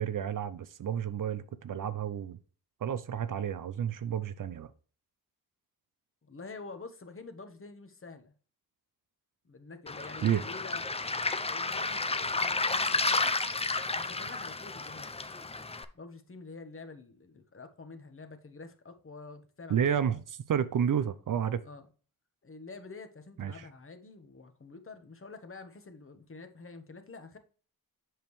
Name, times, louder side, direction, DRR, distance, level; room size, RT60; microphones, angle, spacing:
voice 1, 0.0-2.4 2.8-4.7 10.2-10.4 19.7-21.6 23.4-23.7, right 8 dB, 55° right, 0.6 m, -31 dB
voice 2, 6.3-8.3 9.4-10.8 11.5-13.3 13.9-15.2 15.9-20.0 21.6-21.9 22.4-27.4, left 3 dB, 35° left, 1.2 m, -47 dB
Waves surf, 9.9-15.8, left 3 dB, 15° left, 0.6 m, -31 dB
7.7 x 5.2 x 3.2 m
cardioid pair, 70°, 37 cm